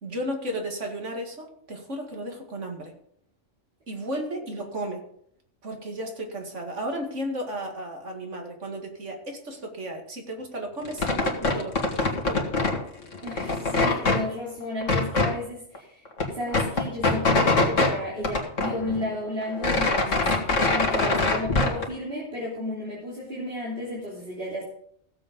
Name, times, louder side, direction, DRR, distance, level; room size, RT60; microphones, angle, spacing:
voice 1, 0.0-2.9 3.9-5.0 5.6-12.5, right 1 dB, 75° right, 2 dB, 2.5 m, -34 dB
sound 1, 10.9-12.8 13.1-14.2 14.8-15.3 15.8-15.9 16.1-17.9 18.2-19.1 19.4-21.8, left 3 dB, 85° left, 2.3 m, -23 dB
voice 2, 13.2-24.6, left 1 dB, 50° right, -6 dB, 3.5 m, -33 dB
16.0 x 7.6 x 5.3 m, 0.68 s
omnidirectional pair, 1.3 m